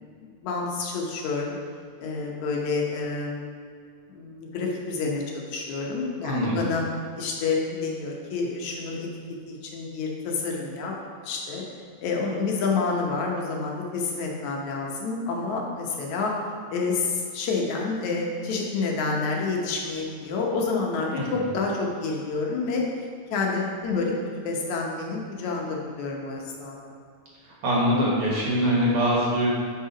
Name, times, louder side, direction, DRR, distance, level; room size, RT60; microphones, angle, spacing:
voice 1, 0.0-1.5 2.0-3.5 4.1-6.8 7.2-9.1 9.5-10.9 11.2-11.6 12.0-16.3 16.7-22.8 23.3-26.8, left 4 dB, 75° left, -1 dB, 2.2 m, -28 dB
voice 2, 6.2-6.7 21.4-21.5 27.6-29.5, equal, 55° right, -6 dB, 2.2 m, -23 dB
6.6 x 5.5 x 5.0 m, 2.2 s
omnidirectional pair, 3.5 m